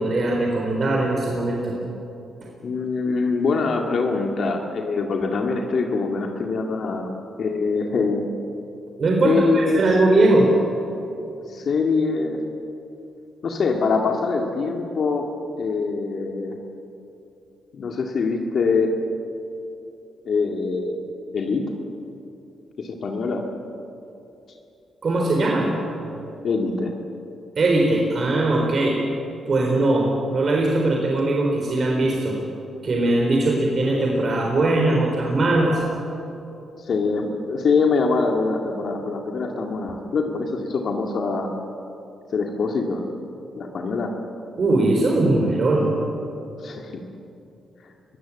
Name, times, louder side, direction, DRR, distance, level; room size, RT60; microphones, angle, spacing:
voice 1, 0.0-1.8 9.0-10.5 25.0-25.7 27.6-29.0 29.5-32.4 32.8-35.8 44.6-45.9, right 2 dB, 50° right, -1 dB, 4.0 m, -20 dB
voice 2, 2.6-7.1 7.4-8.3 9.2-9.8 11.5-12.4 13.4-15.3 15.6-16.6 17.7-18.9 20.3-21.0 21.3-21.6 22.8-23.4 26.4-26.9 36.8-41.5 42.3-43.0 43.5-44.1 46.6-47.0 47.8-47.9, left 4 dB, 65° left, 2 dB, 2.1 m, -24 dB
22.5 x 15.5 x 8.6 m, 2.8 s
supercardioid pair, 55°, 0 cm